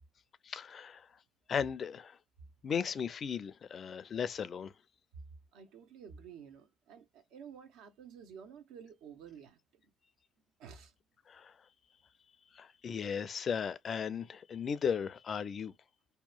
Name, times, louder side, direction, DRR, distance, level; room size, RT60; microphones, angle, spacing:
voice 1, 0.4-1.1 1.5-2.2 2.6-4.7 11.3-11.5 12.5-15.7, left 7 dB, 45° left, 0.4 m, -36 dB
voice 2, 5.5-9.8 10.6-10.9, right 7 dB, 80° right, 0.7 m, -52 dB
2.8 x 2.2 x 2.3 m
cardioid pair, 95°, 0 cm